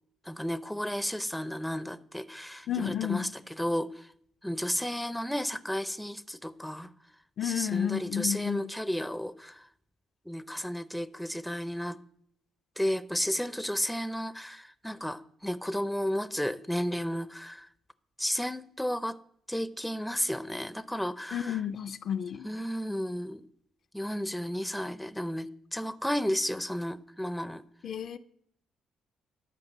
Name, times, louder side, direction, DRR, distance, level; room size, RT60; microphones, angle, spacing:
voice 1, 0.3-4.1 4.4-6.9 7.4-9.6 10.3-12.0 12.8-17.7 18.2-19.2 19.5-21.6 22.4-23.4 23.9-27.6, equal, 5° left, 0.5 m, -33 dB
voice 2, 2.7-3.3 7.4-8.7 21.3-22.5 27.8-28.2, left 9 dB, 60° left, 0.5 m, -31 dB
11.0 x 5.3 x 7.3 m
cardioid pair, 90°, 0 cm